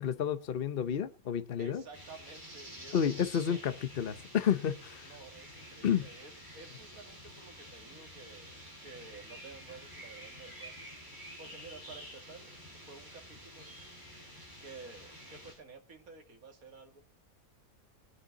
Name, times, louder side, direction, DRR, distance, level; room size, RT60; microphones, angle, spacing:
voice 1, 0.0-1.8 2.9-5.1 5.8-6.1, left 8 dB, 50° left, 0.8 m, -31 dB
voice 2, 1.6-3.2 3.4-3.6 5.0-10.9 11.4-12.5 12.8-13.7 14.6-17.0, right 4 dB, 70° right, 2.5 m, -52 dB
sound 1, 1.9-15.5, equal, 15° right, 7.1 m, -50 dB
20.0 x 10.0 x 3.9 m
omnidirectional pair, 1.6 m